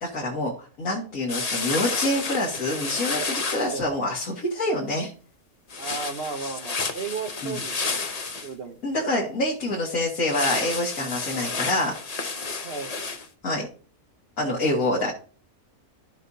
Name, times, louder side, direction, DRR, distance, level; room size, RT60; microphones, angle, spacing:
voice 1, 0.0-5.1 7.4-7.6 8.8-12.0 13.4-13.7 14.4-15.1, left 1 dB, 65° left, -4 dB, 2.4 m, -26 dB
sound 1, 1.3-3.7 5.7-8.5 10.3-13.3, left 4 dB, 30° left, 0.8 m, -31 dB
voice 2, 5.8-8.0 8.4-8.8 12.6-12.9, right 5 dB, 45° right, 3 dB, 1.1 m, -34 dB
14.5 x 5.7 x 2.7 m, 0.41 s
omnidirectional pair, 1.6 m